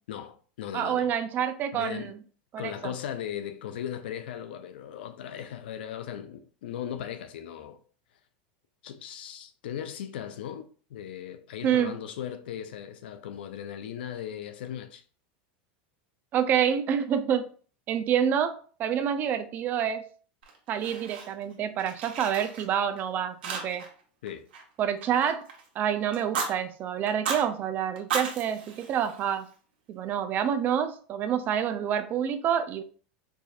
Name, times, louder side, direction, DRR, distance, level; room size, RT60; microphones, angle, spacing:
voice 1, 0.1-1.1 1.7-2.1 2.6-7.8 8.8-15.0 24.2-24.4, left 9 dB, 85° left, 0.5 m, -38 dB
voice 2, 0.7-2.1 2.5-2.9 11.6-11.9 16.3-17.5 17.9-20.0 20.7-23.8 24.8-25.5 25.8-29.5 29.9-32.8, right 9 dB, 35° right, 0.4 m, -27 dB
Fire, 20.4-21.5 21.8-23.0 23.4-24.0 24.2-25.7 26.1-26.5 27.1-27.4 27.9-29.5, right 5 dB, 85° right, 1.1 m, -35 dB
4.7 x 2.7 x 2.4 m
supercardioid pair, 130°, 5 cm